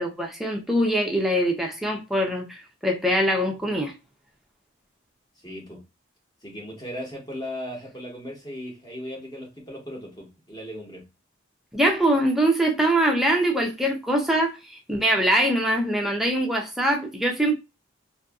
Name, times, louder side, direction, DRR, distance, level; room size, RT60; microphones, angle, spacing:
voice 1, 0.0-3.9 11.7-17.5, right 1 dB, ahead, 0.5 m, -23 dB
voice 2, 5.4-5.8 6.4-11.1, equal, 20° left, 1.0 m, -37 dB
2.7 x 2.6 x 2.3 m
head